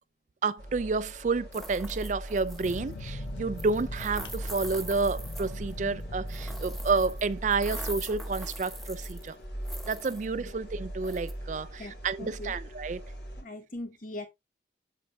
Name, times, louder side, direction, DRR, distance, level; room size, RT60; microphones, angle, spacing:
voice 1, 0.4-9.4 9.9-13.0, right 4 dB, 40° right, 0.4 m, -30 dB
sound 1, 0.6-13.4, right 1 dB, 60° left, 2.8 m, -40 dB
sound 2, 1.5-2.9 3.6-5.7 6.3-7.2 7.5-9.3 9.7-10.3 11.0-11.3, right 1 dB, ahead, 0.9 m, -43 dB
sound 3, 2.6-8.2, left 2 dB, 85° left, 0.9 m, -43 dB
voice 2, 11.8-12.5 13.4-14.3, left 1 dB, 45° left, 2.1 m, -40 dB
8.4 x 7.4 x 2.7 m
head